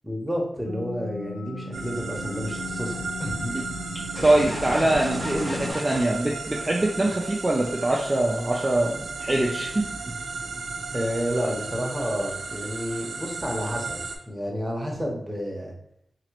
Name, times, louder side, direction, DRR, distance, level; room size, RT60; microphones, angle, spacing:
voice 1, 0.0-3.5 10.9-15.7, equal, 15° right, -1 dB, 1.1 m, -30 dB
sound 1, 0.7-5.7, left 3 dB, 85° left, 0.8 m, -38 dB
sound 2, 1.7-14.2, right 4 dB, 90° right, 0.4 m, -35 dB
sound 3, 4.1-7.2, left 1 dB, 30° left, 1.2 m, -34 dB
voice 2, 4.2-9.9, right 1 dB, 30° right, -2 dB, 0.6 m, -23 dB
2.9 x 2.9 x 3.0 m, 0.70 s
cardioid pair, 45°, 0 cm